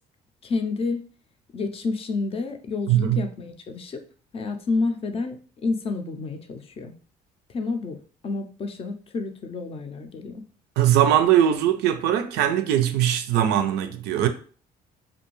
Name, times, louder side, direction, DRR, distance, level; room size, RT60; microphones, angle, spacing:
voice 1, 0.4-1.0 1.5-4.0 4.3-5.4 5.6-6.9 7.5-8.0 8.2-10.4, left 3 dB, 35° left, 0.4 m, -29 dB
voice 2, 2.9-3.2 10.8-14.3, right 11 dB, 85° right, 0.4 m, -20 dB
2.5 x 2.2 x 3.0 m
cardioid pair, 110°, 17 cm